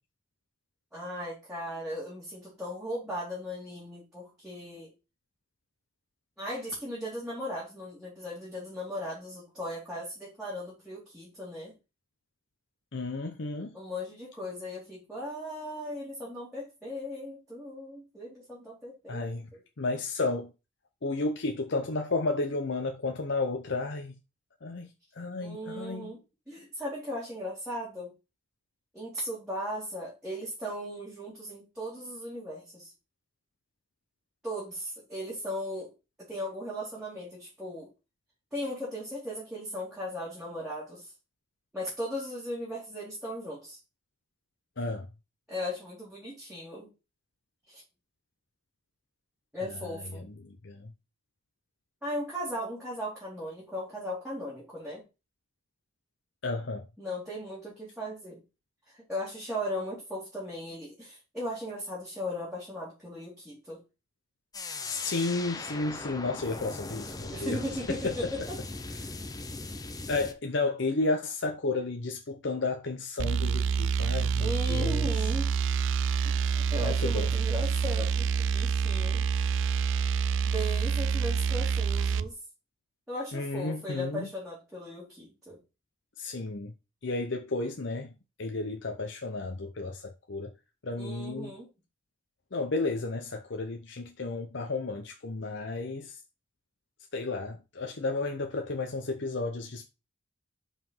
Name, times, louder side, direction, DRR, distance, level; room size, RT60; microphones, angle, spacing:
voice 1, 0.9-4.9 6.4-11.7 13.7-19.4 25.4-26.2 26.5-28.1 28.9-32.9 34.4-35.9 36.3-37.9 38.5-41.1 41.7-43.8 45.5-46.9 47.7-47.8 49.5-50.3 52.0-55.0 57.0-58.4 58.9-63.8 67.3-68.6 74.4-75.5 76.2-79.2 80.4-82.4 83.1-85.6 90.9-91.7, equal, 5° right, 2.7 m, -37 dB
voice 2, 12.9-13.8 19.1-19.5 19.8-20.5 21.0-24.2 24.6-26.2 44.8-45.1 49.6-50.9 56.4-56.9 64.8-67.6 67.9-68.3 70.1-75.1 76.8-77.3 83.3-84.3 86.2-86.7 87.0-88.1 88.4-90.5 90.8-91.5 92.5-96.2 97.1-99.9, left 3 dB, 60° left, 0.7 m, -32 dB
sound 1, 64.5-70.3, left 3 dB, 20° left, 0.6 m, -39 dB
sound 2, 73.2-82.3, right 6 dB, 65° right, 0.4 m, -27 dB
5.6 x 4.9 x 5.5 m
head